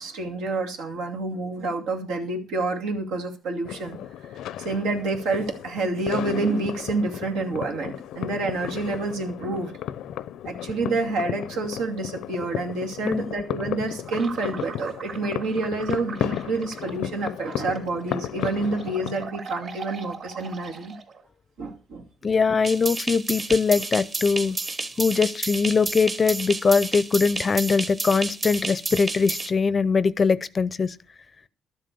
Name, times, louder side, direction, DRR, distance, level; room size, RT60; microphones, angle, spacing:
voice 1, 0.0-4.0 4.3-9.7 10.4-20.9 21.6-22.0, right 3 dB, 90° right, 2.5 m, -28 dB
sound 1, 3.6-19.3, left 11 dB, 75° left, 0.5 m, -34 dB
sound 2, 14.0-21.3, right 5 dB, 50° right, 3.3 m, -41 dB
voice 2, 22.2-24.6 25.0-30.9, left 5 dB, 30° left, 0.5 m, -22 dB
sound 3, 22.6-29.5, right 2 dB, 25° right, 1.0 m, -31 dB
12.5 x 7.7 x 6.7 m
cardioid pair, 130°, 0 cm